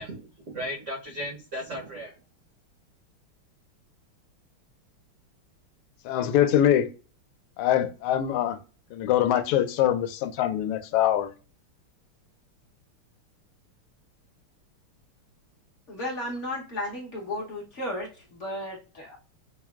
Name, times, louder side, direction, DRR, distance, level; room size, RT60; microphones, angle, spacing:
voice 1, 0.0-2.1, equal, 90° right, 0.6 m, -36 dB
voice 2, 6.0-6.9 7.6-8.6 8.9-11.3, left 11 dB, 85° left, 1.5 m, -23 dB
voice 3, 15.9-19.2, left 1 dB, 65° left, 0.7 m, -34 dB
6.1 x 2.1 x 2.2 m
omnidirectional pair, 2.4 m